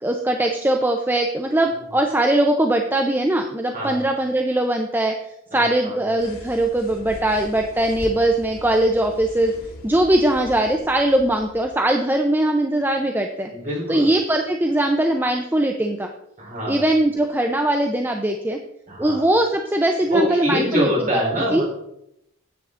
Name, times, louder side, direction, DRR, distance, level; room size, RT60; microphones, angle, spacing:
voice 1, 0.0-5.1 5.5-9.5 9.8-13.5 13.9-16.1 16.7-18.6 19.0-21.2 21.5-21.6, right 1 dB, 10° right, 4 dB, 0.5 m, -20 dB
sound 1, 6.2-11.9, left 1 dB, 90° left, 2.8 m, -40 dB
voice 2, 13.5-14.1 16.4-16.8 18.9-19.2 20.1-21.7, equal, 35° right, -4 dB, 4.0 m, -24 dB
9.5 x 8.2 x 3.7 m, 0.80 s
head